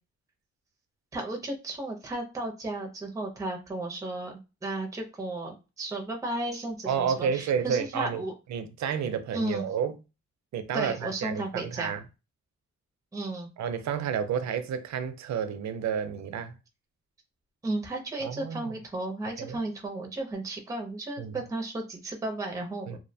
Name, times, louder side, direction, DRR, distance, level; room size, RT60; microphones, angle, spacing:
voice 1, 1.1-8.3 9.3-9.6 10.7-11.9 13.1-13.5 17.6-23.0, right 2 dB, 10° right, 0.5 m, -34 dB
voice 2, 6.9-8.2 8.5-9.9 10.5-12.0 13.6-16.6 18.2-18.7 19.4-19.6 21.2-21.4 22.9-23.0, right 7 dB, 70° right, 0.4 m, -30 dB
2.4 x 2.1 x 2.6 m
wide cardioid pair, 130°, 29 cm